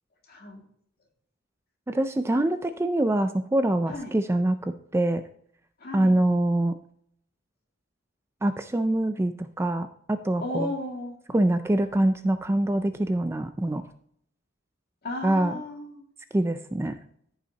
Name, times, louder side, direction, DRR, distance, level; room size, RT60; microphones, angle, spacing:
voice 1, 0.3-0.6 3.9-4.1 5.8-6.2 10.4-11.1 15.0-16.0, left 1 dB, 50° left, 1 dB, 2.2 m, -34 dB
voice 2, 1.9-5.2 5.9-6.7 8.4-10.7 11.3-13.8 15.2-15.6 16.3-17.0, right 1 dB, 15° right, 10 dB, 0.4 m, -24 dB
14.0 x 5.6 x 2.8 m, 0.67 s
head